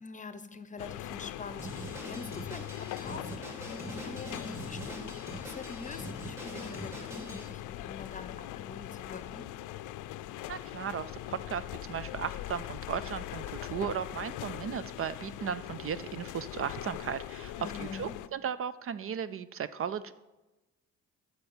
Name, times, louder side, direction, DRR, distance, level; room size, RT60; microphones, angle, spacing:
voice 1, 0.0-9.5 17.6-18.1, left 4 dB, 25° left, 11 dB, 0.9 m, -45 dB
sound 1, 0.8-18.3, left 14 dB, 90° left, 0.5 m, -41 dB
Drum kit, 1.6-7.5, right 1 dB, 10° right, 3.3 m, -43 dB
voice 2, 10.5-17.5 17.8-20.1, right 8 dB, 45° right, 15 dB, 0.5 m, -36 dB
9.0 x 6.7 x 7.1 m, 1.1 s
cardioid pair, 90°, 30 cm